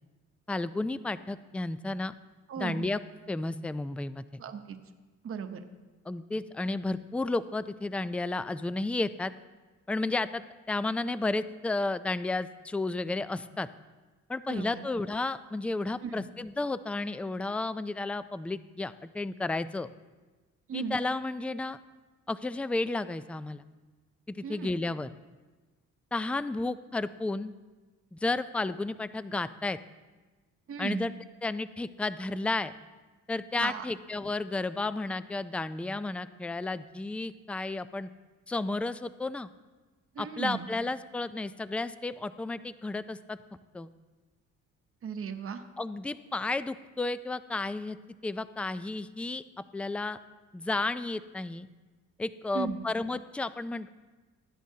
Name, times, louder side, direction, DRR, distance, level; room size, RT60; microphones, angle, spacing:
voice 1, 0.5-2.1 2.6-3.0 3.3-4.2 6.1-9.3 9.9-13.7 14.3-19.9 20.7-21.8 22.3-23.6 24.3-25.1 26.1-27.5 28.1-29.8 30.8-31.1 31.4-32.7 33.3-38.1 38.5-39.5 40.2-43.4 43.7-43.9 45.8-48.0 48.2-49.4 49.7-50.2 50.5-51.7 52.2-53.9, left 2 dB, 5° left, 14 dB, 0.3 m, -32 dB
voice 2, 2.5-2.8 4.4-4.8 5.2-5.6 14.5-14.9 16.0-16.2 20.7-21.0 24.4-24.7 30.7-31.0 33.6-33.8 40.2-40.7 45.0-45.6 52.5-52.8, right 6 dB, 45° right, 7 dB, 0.9 m, -36 dB
16.5 x 10.5 x 2.8 m, 1.3 s
cardioid pair, 90°, 30 cm